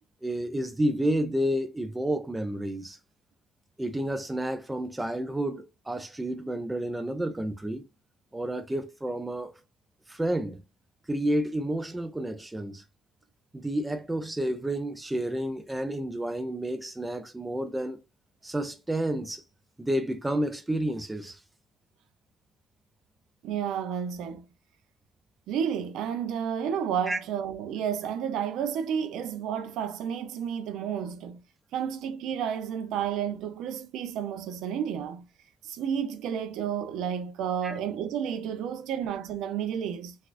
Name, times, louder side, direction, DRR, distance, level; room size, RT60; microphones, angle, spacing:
voice 1, 0.2-3.0 3.8-7.8 8.3-9.6 10.1-10.6 11.1-12.8 13.5-18.0 18.4-19.4 19.8-21.4 27.1-27.2 37.6-37.8, right 1 dB, 10° right, 0.4 m, -30 dB
voice 2, 23.4-24.5 25.5-31.4 31.7-35.2 35.6-40.2, right 8 dB, 75° right, 0.5 m, -31 dB
4.1 x 2.4 x 2.5 m
cardioid pair, 160°, 0 cm